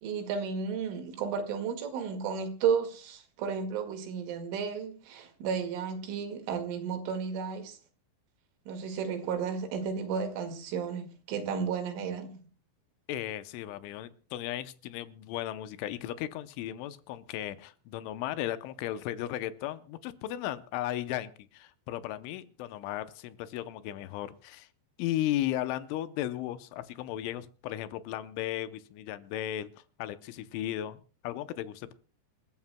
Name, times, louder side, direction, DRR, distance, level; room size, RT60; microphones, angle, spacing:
voice 1, 0.0-7.8 8.7-12.4, right 6 dB, 80° right, 4.4 m, -33 dB
voice 2, 13.1-24.7 25.0-29.7 30.0-31.0 31.2-31.9, left 13 dB, 80° left, 3.2 m, -35 dB
27.5 x 13.0 x 2.2 m
omnidirectional pair, 5.5 m